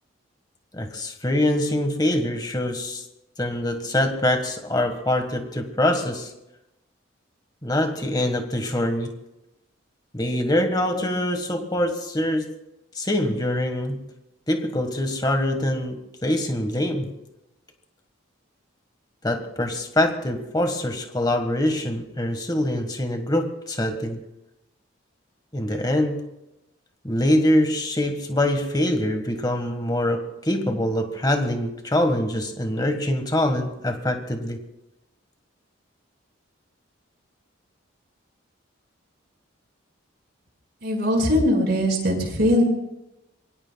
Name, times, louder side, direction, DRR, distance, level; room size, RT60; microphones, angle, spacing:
voice 1, 0.7-3.1 3.4-6.3 7.6-9.1 10.1-12.5 12.9-14.0 14.5-17.1 19.2-24.2 25.5-26.2 27.0-34.6, left 1 dB, 20° left, 6 dB, 1.5 m, -24 dB
voice 2, 40.8-42.6, left 1 dB, 55° right, 1 dB, 5.2 m, -20 dB
26.5 x 23.0 x 2.3 m, 0.90 s
head